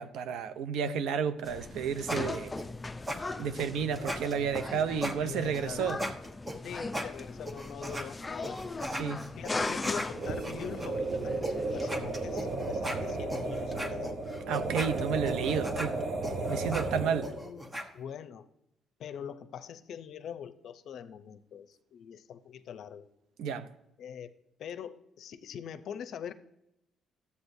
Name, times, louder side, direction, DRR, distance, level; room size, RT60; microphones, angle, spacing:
voice 1, 0.0-2.5 3.4-6.0 9.0-9.2 14.5-16.0 16.5-17.3 23.4-23.7, right 7 dB, 90° right, 0.5 m, -31 dB
sound 1, 1.5-12.6, left 3 dB, 20° left, 0.5 m, -39 dB
sound 2, 1.6-8.1 8.4-10.9 11.4-11.5 11.8-17.9, equal, 20° right, 1.1 m, -38 dB
voice 2, 5.2-5.9 6.6-8.9 9.4-14.2 16.4-18.5 19.0-23.1 24.0-24.3 24.6-26.3, left 8 dB, 70° left, 0.5 m, -43 dB
sound 3, 10.1-17.5, right 2 dB, 55° right, 0.9 m, -34 dB
13.0 x 8.3 x 2.6 m
cardioid pair, 90°, 0 cm